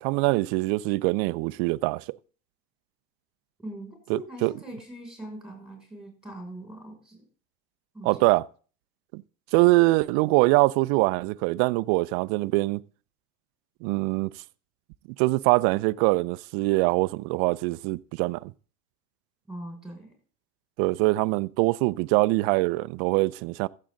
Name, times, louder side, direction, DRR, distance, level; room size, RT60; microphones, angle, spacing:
voice 1, 0.0-2.2 4.1-4.5 8.0-8.4 9.1-9.2 9.5-12.8 13.8-14.3 15.2-18.5 20.8-23.7, right 23 dB, 55° right, 0.6 m, -23 dB
voice 2, 3.6-7.2 7.9-8.3 19.5-20.1, right 1 dB, ahead, 5.8 m, -41 dB
15.0 x 7.6 x 3.9 m
supercardioid pair, 110°, 46 cm